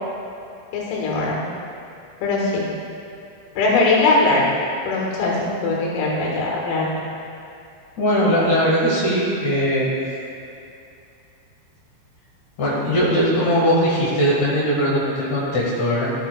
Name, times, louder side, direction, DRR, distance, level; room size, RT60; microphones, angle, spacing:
voice 1, 0.7-1.4 2.2-2.7 3.6-4.5 4.9-6.9, left 3 dB, 85° left, -3 dB, 4.2 m, -20 dB
voice 2, 8.0-9.9 12.6-16.1, equal, 70° left, -8 dB, 1.8 m, -20 dB
16.0 x 7.0 x 2.3 m, 2.6 s
omnidirectional pair, 6.0 m